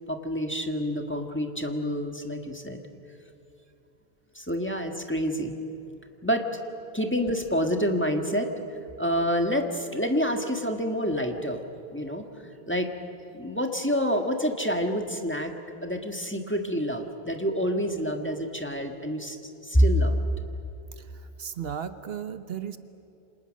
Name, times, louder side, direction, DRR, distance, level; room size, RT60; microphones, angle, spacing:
voice 1, 0.1-2.8 4.3-5.6 6.2-6.4 6.9-8.5 9.0-11.6 11.9-12.9 13.3-15.5 15.8-19.4 19.6-20.2, equal, 10° left, 3 dB, 1.6 m, -27 dB
voice 2, 21.4-22.8, right 8 dB, 65° right, 11 dB, 1.1 m, -35 dB
28.5 x 26.5 x 6.4 m, 2.9 s
omnidirectional pair, 1.1 m